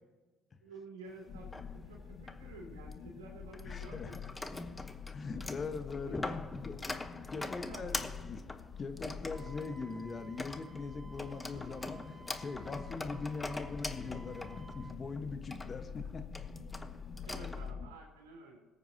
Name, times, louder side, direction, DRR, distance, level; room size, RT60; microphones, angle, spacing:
voice 1, 0.6-4.6 6.1-6.4 7.4-8.2 17.2-18.6, right 3 dB, 90° right, 0 dB, 3.3 m, -51 dB
sound 1, 1.2-2.9 3.5-17.7, left 2 dB, 15° left, 1.0 m, -44 dB
sound 2, 1.3-17.9, left 6 dB, 60° left, 1.2 m, -47 dB
voice 2, 3.6-4.1 5.1-6.7 7.3-8.4 8.8-16.2, left 4 dB, 35° left, 8 dB, 1.3 m, -41 dB
Wind instrument woodwind instrument, 9.3-15.0, right 3 dB, 30° right, 1.4 m, -56 dB
21.5 x 8.9 x 2.9 m, 1.2 s
hypercardioid pair, 65°, 0 cm